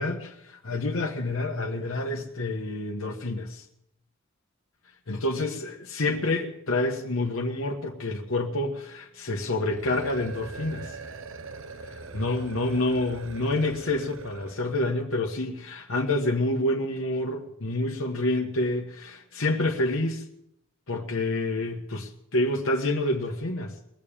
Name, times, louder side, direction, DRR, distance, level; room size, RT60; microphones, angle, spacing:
voice 1, 0.0-3.6 5.1-11.0 12.1-20.2 20.9-23.8, left 2 dB, 75° left, 1.3 m, -28 dB
sound 1, 9.7-14.7, right 3 dB, 70° right, 1.0 m, -42 dB
20.5 x 7.0 x 8.7 m
head